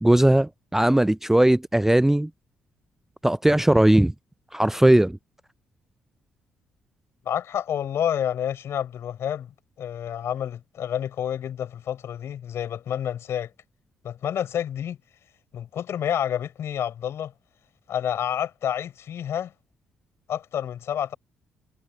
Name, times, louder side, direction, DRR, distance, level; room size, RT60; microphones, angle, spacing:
voice 1, 0.0-2.3 3.2-4.1 4.5-5.2, right 1 dB, 5° right, 0.4 m, -18 dB
voice 2, 7.2-13.5 14.0-15.0 15.5-17.3 17.9-19.5 20.3-21.2, left 9 dB, 60° left, 5.8 m, -29 dB
hypercardioid pair, 40°, 5 cm